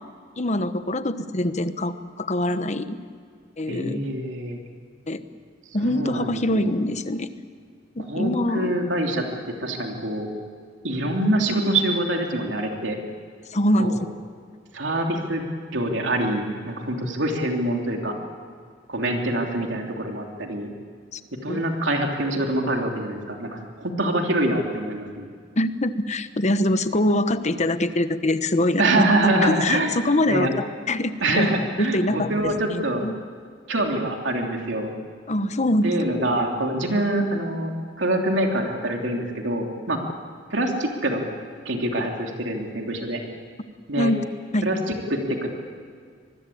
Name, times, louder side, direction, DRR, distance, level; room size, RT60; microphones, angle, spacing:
voice 1, 0.4-3.0 3.6-4.0 5.1-5.2 5.7-7.3 8.0-8.8 13.5-13.9 21.1-21.2 21.5-21.6 25.6-29.0 29.4-30.5 30.9-31.5 31.8-33.2 35.3-35.9 44.0-44.2 44.5-44.7, left 1 dB, 40° left, 11 dB, 1.1 m, -24 dB
voice 2, 3.7-4.6 5.8-6.7 8.1-9.3 9.6-10.3 10.8-13.0 13.8-14.0 14.7-15.4 15.7-18.2 18.9-20.7 21.4-25.3 28.8-30.0 30.2-30.5 31.2-33.0 33.7-34.9 35.8-40.0 40.5-41.2 41.6-43.2 43.9-44.1 44.6-45.5, right 1 dB, 75° right, 2 dB, 3.1 m, -25 dB
25.0 x 21.0 x 8.6 m, 2.1 s
head